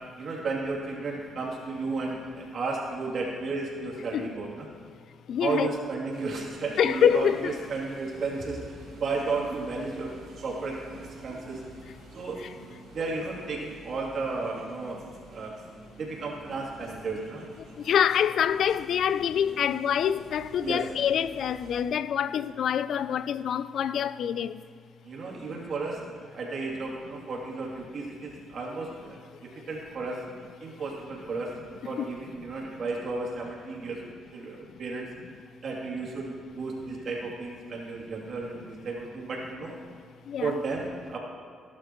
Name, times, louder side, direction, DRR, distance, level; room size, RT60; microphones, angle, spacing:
voice 1, 0.2-4.7 5.4-10.1 10.4-11.6 12.1-12.4 12.9-15.5 16.0-17.4 20.6-20.8 25.0-26.0 26.3-29.2 29.7-30.2 30.6-31.5 31.8-34.0 34.3-35.1 35.6-39.8 40.4-41.2, right 3 dB, 55° right, 3.0 m, -33 dB
voice 2, 5.3-5.7 6.8-7.5 17.9-24.5 32.0-32.1 40.3-40.6, left 8 dB, 65° left, 0.4 m, -26 dB
sound 1, 6.1-21.8, right 2 dB, 70° right, 2.8 m, -50 dB
17.5 x 11.5 x 3.1 m
cardioid pair, 90°, 0 cm